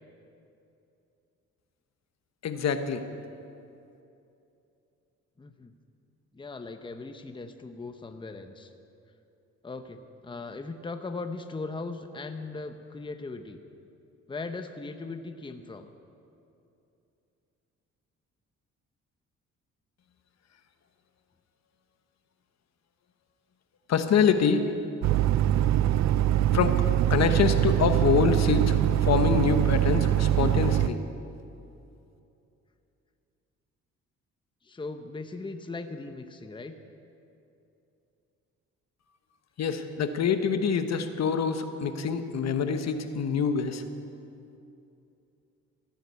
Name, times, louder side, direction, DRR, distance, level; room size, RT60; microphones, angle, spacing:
voice 1, 2.4-3.0 23.9-24.7 26.5-26.8 27.1-31.0 39.6-43.8, left 6 dB, 60° left, 8 dB, 1.2 m, -25 dB
voice 2, 5.4-5.7 6.3-8.7 9.6-13.6 14.3-15.9 34.6-36.7, left 3 dB, 15° left, 7 dB, 0.9 m, -38 dB
sound 1, 25.0-30.9, right 11 dB, 65° right, 0.5 m, -23 dB
15.5 x 10.0 x 8.3 m, 2.7 s
cardioid pair, 90°, 30 cm